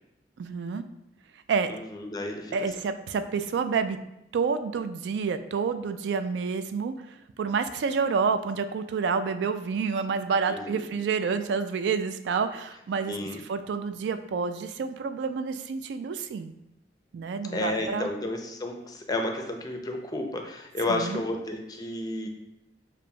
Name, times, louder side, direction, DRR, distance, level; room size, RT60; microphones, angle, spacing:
voice 1, 0.4-0.8 1.5-1.7 2.5-4.0 4.3-6.9 7.4-16.5 17.1-18.1 20.9-21.2, right 5 dB, 80° right, 9 dB, 0.3 m, -28 dB
voice 2, 1.7-2.6 10.5-10.9 13.1-13.4 17.5-22.3, left 2 dB, 20° left, 3 dB, 0.4 m, -32 dB
6.7 x 2.5 x 2.2 m, 0.85 s
head